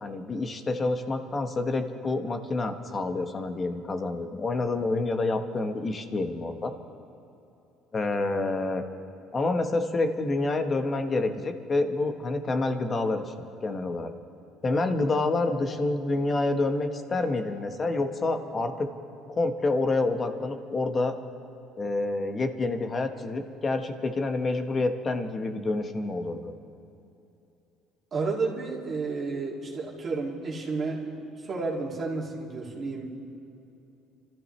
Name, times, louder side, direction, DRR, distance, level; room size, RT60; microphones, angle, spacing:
voice 1, 0.0-6.7 7.9-8.8 9.3-13.2 13.6-14.1 14.6-18.9 19.3-21.1 21.8-26.5, left 2 dB, 30° left, 7 dB, 1.2 m, -28 dB
voice 2, 28.1-33.1, right 4 dB, 35° right, -4 dB, 2.5 m, -31 dB
29.5 x 13.5 x 3.3 m, 2.9 s
cardioid pair, 120°, 0 cm